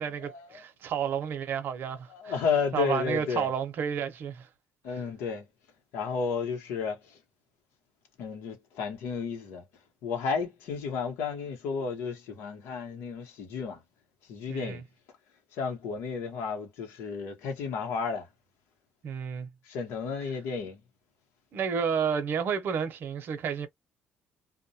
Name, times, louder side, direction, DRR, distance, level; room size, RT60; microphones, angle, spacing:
voice 1, 0.0-2.4 2.7-4.5 4.9-5.0 14.5-14.8 19.0-19.5 21.5-23.7, right 7 dB, 60° right, 0.7 m, -31 dB
voice 2, 2.1-3.5 4.8-5.5 5.9-7.2 8.2-9.6 10.0-13.8 14.3-14.8 15.5-18.3 19.7-20.8, left 5 dB, 85° left, 1.0 m, -32 dB
2.3 x 2.1 x 2.6 m
cardioid pair, 120°, 4 cm